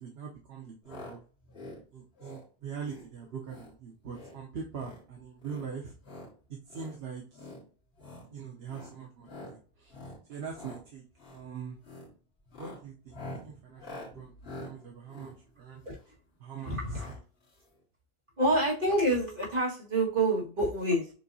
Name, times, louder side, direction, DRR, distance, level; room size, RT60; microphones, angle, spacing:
voice 1, 0.0-1.2 1.9-5.9 6.5-7.5 8.3-10.0 10.3-11.8 12.6-14.3 14.6-15.8 16.4-17.2, right 6 dB, 80° right, -1 dB, 1.0 m, -43 dB
sound 1, 0.9-1.2 1.4-1.8 2.2-2.5 2.8-3.1 3.4-3.7 4.0-4.4 4.7-5.0 5.4-6.3 6.7-6.9 7.3-7.6 8.0-8.3 8.7-8.9 9.3-9.6 9.9-10.2 10.5-10.8 11.2-11.4 11.8-12.1 12.4-16.1 16.9-17.2 17.5-17.6 17.7-17.8, left 2 dB, 75° left, 1.7 m, -46 dB
voice 2, 16.6-17.1 18.4-21.1, right 1 dB, 55° right, -5 dB, 1.9 m, -27 dB
6.6 x 2.7 x 2.7 m, 0.37 s
omnidirectional pair, 1.1 m